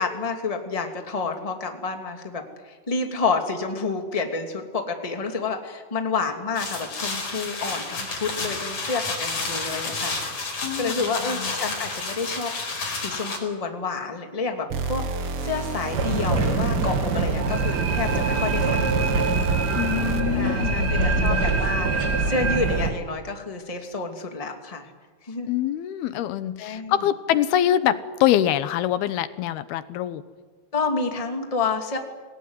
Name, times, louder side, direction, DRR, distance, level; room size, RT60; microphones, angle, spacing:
voice 1, 0.0-12.5 13.0-19.2 20.3-24.9 25.2-25.5 26.6-26.9 30.7-32.0, left 4 dB, 15° left, 4 dB, 1.6 m, -29 dB
sound 1, 6.6-13.4, left 3 dB, 50° left, 6.4 m, -30 dB
voice 2, 10.6-11.5 19.8-21.5 25.5-30.2, left 11 dB, 75° left, 13 dB, 2.8 m, -25 dB
sound 2, 14.7-20.5, right 4 dB, 85° right, 1.2 m, -31 dB
sound 3, 15.9-22.9, right 3 dB, 40° right, 1.5 m, -24 dB
27.0 x 19.0 x 9.7 m, 1.4 s
omnidirectional pair, 4.7 m